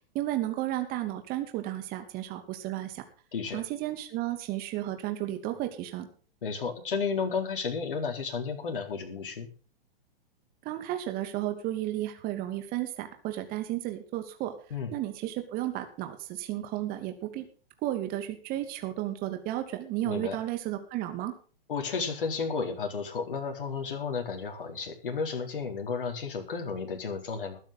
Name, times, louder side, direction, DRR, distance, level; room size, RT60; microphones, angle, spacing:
voice 1, 0.1-3.0 3.5-6.1 10.6-14.5 14.9-17.5 17.8-21.3, right 14 dB, 30° right, 7 dB, 2.7 m, -33 dB
voice 2, 6.4-9.5 14.7-14.9 20.0-20.4 21.7-27.6, left 5 dB, 60° left, 3 dB, 4.2 m, -32 dB
20.5 x 9.9 x 4.0 m, 0.40 s
figure-of-eight pair, 110°, 29 cm